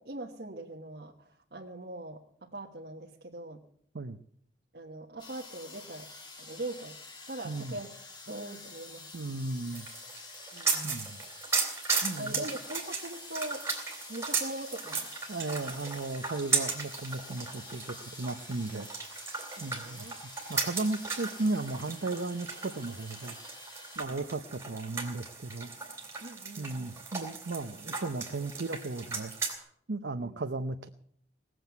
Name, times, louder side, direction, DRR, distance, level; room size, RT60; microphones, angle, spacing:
voice 1, 0.0-3.6 4.7-6.1 6.4-7.0 7.3-7.9 8.3-9.1 10.5-11.0 12.2-15.1 15.7-15.8 19.6-20.2 24.1-24.4 24.8-25.0 26.2-26.9 27.7-27.9 30.2-30.4, right 1 dB, 60° right, 0 dB, 1.3 m, -42 dB
sound 1, 5.2-24.0, left 3 dB, 25° left, 1.8 m, -49 dB
voice 2, 7.4-7.8 9.1-9.9 10.8-11.2 12.0-12.5 15.3-19.3 19.6-20.1 20.5-23.3 24.0-25.7 26.6-29.6 29.9-30.9, right 2 dB, 75° right, 7 dB, 0.7 m, -35 dB
sound 2, 9.7-29.6, right 4 dB, 15° right, 3.4 m, -36 dB
19.0 x 7.8 x 9.2 m, 0.67 s
head